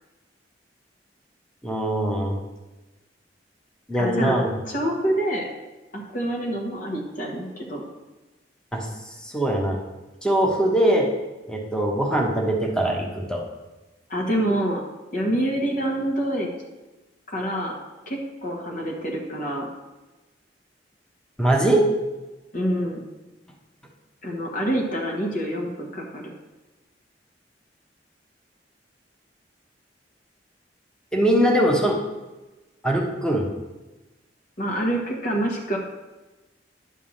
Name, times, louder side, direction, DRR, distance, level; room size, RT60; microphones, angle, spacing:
voice 1, 1.6-2.4 3.9-4.5 8.7-8.9 9.2-9.8 10.2-11.1 11.5-13.4 21.4-21.8 31.1-32.0 32.8-33.5, right 1 dB, 5° left, 0 dB, 1.1 m, -21 dB
voice 2, 4.0-4.4 4.6-5.5 5.9-7.9 14.1-14.8 15.1-16.5 17.3-17.8 18.1-19.7 22.5-23.0 24.2-26.3 34.6-35.8, right 1 dB, 50° left, -1 dB, 1.3 m, -26 dB
10.0 x 3.6 x 7.2 m, 1.1 s
head